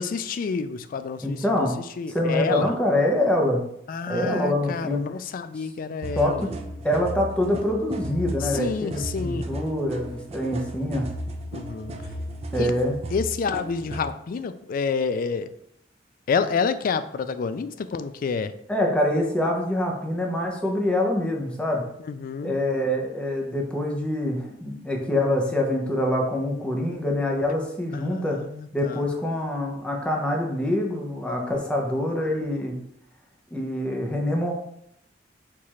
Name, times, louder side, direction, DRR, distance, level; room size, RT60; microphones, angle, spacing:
voice 1, 0.0-1.7 2.0-2.7 3.9-6.4 8.5-9.5 11.5-12.0 12.6-12.7 13.1-15.5 16.3-18.5 22.1-22.5 27.9-29.0, left 5 dB, 50° left, 12 dB, 0.3 m, -28 dB
voice 2, 1.2-1.7 2.1-3.6 4.1-5.0 5.6-5.7 6.1-6.5 6.8-11.1 12.5-13.0 18.7-21.9 22.4-28.4 28.7-32.8 33.5-34.5, left 1 dB, 5° left, 0 dB, 0.7 m, -25 dB
sound 1, 6.0-14.1, right 1 dB, 35° right, 0.5 m, -35 dB
4.6 x 2.5 x 4.2 m, 0.73 s
head